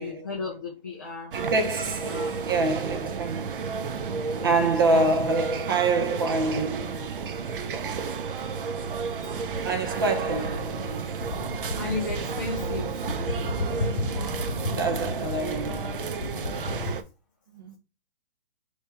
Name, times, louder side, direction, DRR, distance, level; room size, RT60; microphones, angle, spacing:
voice 1, 0.0-1.3 2.0-2.3 4.3-5.1 11.7-13.3, left 3 dB, 20° left, 0.5 m, -35 dB
voice 2, 1.3-3.8 4.4-7.3 9.6-11.3 14.7-16.2 17.5-17.8, right 3 dB, 25° right, 0.6 m, -27 dB
sound 1, 1.3-17.0, right 5 dB, 65° right, 0.7 m, -32 dB
sound 2, 7.6-16.9, left 1 dB, 45° left, 0.8 m, -34 dB
3.6 x 2.9 x 4.3 m
hypercardioid pair, 175°, 29 cm